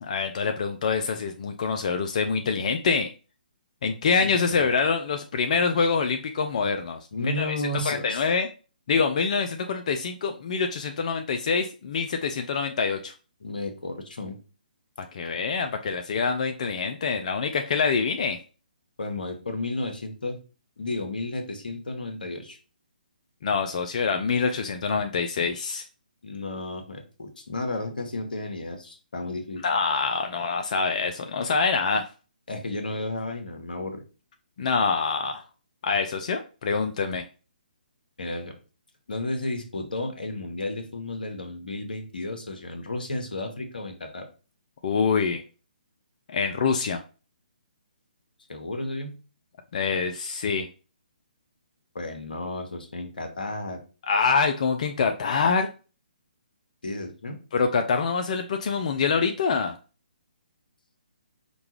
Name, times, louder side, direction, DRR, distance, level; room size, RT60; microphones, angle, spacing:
voice 1, 0.0-3.1 3.8-7.6 7.8-8.5 8.9-13.1 15.0-18.4 23.4-25.8 29.6-32.1 34.6-35.4 35.8-37.2 44.8-45.4 46.3-47.0 49.7-50.7 54.1-55.7 57.5-59.7, left 5 dB, 50° left, 6 dB, 0.4 m, -25 dB
voice 2, 4.2-4.7 7.1-8.3 13.4-14.4 19.0-20.4 20.8-22.6 26.2-29.6 32.5-34.0 38.2-38.5 39.1-44.3 48.5-49.2 51.9-53.8 56.8-57.4, left 2 dB, 70° left, 4 dB, 1.1 m, -33 dB
5.1 x 2.3 x 3.1 m, 0.35 s
figure-of-eight pair, 140°, 5 cm